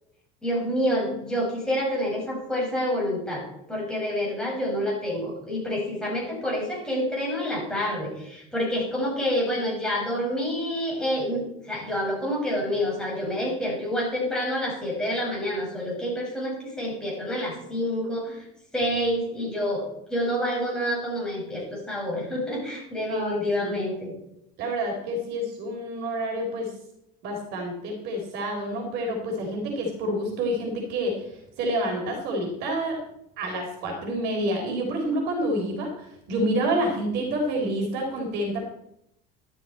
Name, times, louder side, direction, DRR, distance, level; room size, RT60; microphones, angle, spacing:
voice 1, 0.4-18.5 18.7-19.8 20.1-24.1, equal, 5° left, -4 dB, 6.0 m, -28 dB
voice 2, 23.1-23.8 24.6-26.7 27.2-33.0 33.4-38.6, right 1 dB, 60° right, 2 dB, 4.1 m, -28 dB
13.0 x 12.5 x 4.3 m, 0.79 s
cardioid pair, 160°, 20 cm